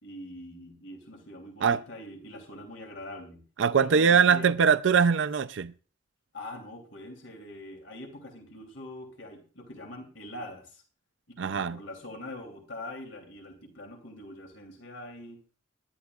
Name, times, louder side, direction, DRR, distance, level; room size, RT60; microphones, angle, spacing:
voice 1, 0.0-3.5 3.8-4.5 6.3-10.8 11.3-15.4, left 1 dB, 90° left, 2.9 m, -43 dB
voice 2, 3.6-5.7 11.4-11.8, right 6 dB, 70° right, 0.5 m, -22 dB
21.0 x 11.5 x 2.4 m
head